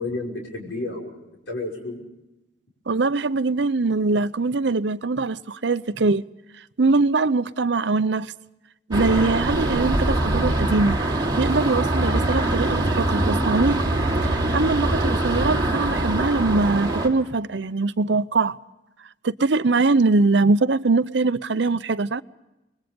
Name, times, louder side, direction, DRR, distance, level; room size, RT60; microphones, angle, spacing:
voice 1, 0.0-2.0, left 2 dB, 90° left, 5.7 m, -31 dB
voice 2, 2.9-6.2 6.8-8.3 8.9-11.0 11.4-13.8 14.2-18.6 19.2-22.2, right 3 dB, 70° right, 0.7 m, -22 dB
sound 1, 8.9-17.1, right 1 dB, 20° right, 3.0 m, -23 dB
28.0 x 21.5 x 5.3 m
head